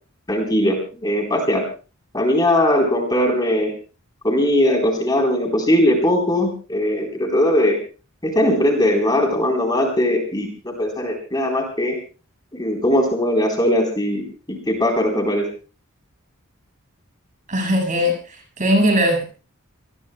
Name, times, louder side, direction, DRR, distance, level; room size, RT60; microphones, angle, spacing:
voice 1, 0.3-1.7 2.1-3.7 4.2-7.8 8.2-12.0 12.5-15.5, left 1 dB, 20° left, 3 dB, 3.9 m, -20 dB
voice 2, 17.5-19.2, equal, 35° right, 3 dB, 6.5 m, -19 dB
27.0 x 20.0 x 2.3 m, 0.34 s
head